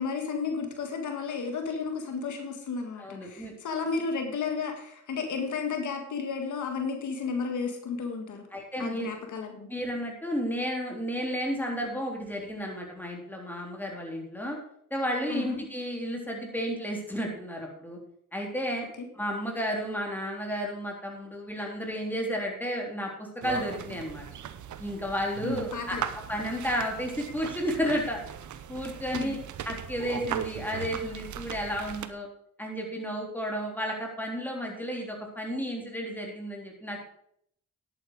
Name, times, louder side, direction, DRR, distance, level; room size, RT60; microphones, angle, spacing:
voice 1, 0.0-8.4 8.8-9.7 15.3-15.6 19.0-19.1 25.4-26.0 29.1-29.4, left 5 dB, 80° left, 4 dB, 1.7 m, -33 dB
voice 2, 3.0-3.5 8.5-9.1 9.7-14.6 14.9-18.0 18.3-18.9 19.1-24.3 24.8-26.0 26.3-28.2 28.7-29.4 29.6-32.3 32.6-37.0, equal, 5° left, 0 dB, 3.7 m, -32 dB
sound 1, 23.4-32.1, right 9 dB, 75° right, 0.8 m, -38 dB
10.5 x 8.8 x 4.8 m, 0.70 s
cardioid pair, 65°, 30 cm